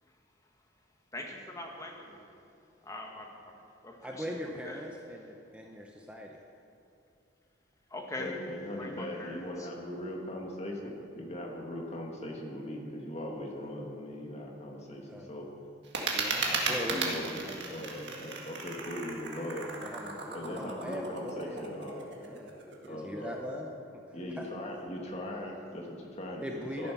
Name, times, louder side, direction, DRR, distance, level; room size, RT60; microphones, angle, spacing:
voice 1, 1.1-2.2 2.8-4.3 4.6-4.8 7.9-8.3 8.8-9.7, left 2 dB, 15° left, 0 dB, 1.5 m, -42 dB
voice 2, 4.0-6.4 15.1-15.3 16.1-18.3 19.8-22.5 22.8-24.0 24.4-24.5 26.4-26.9, left 1 dB, 5° right, 0 dB, 0.7 m, -41 dB
voice 3, 8.2-15.5 16.3-17.4 17.7-19.8 20.3-22.0 22.9-23.4 24.1-26.9, left 1 dB, 35° left, 0 dB, 1.8 m, -39 dB
sound 1, 15.8-22.9, right 4 dB, 60° right, 1.7 m, -36 dB
13.0 x 10.5 x 6.0 m, 2.7 s
head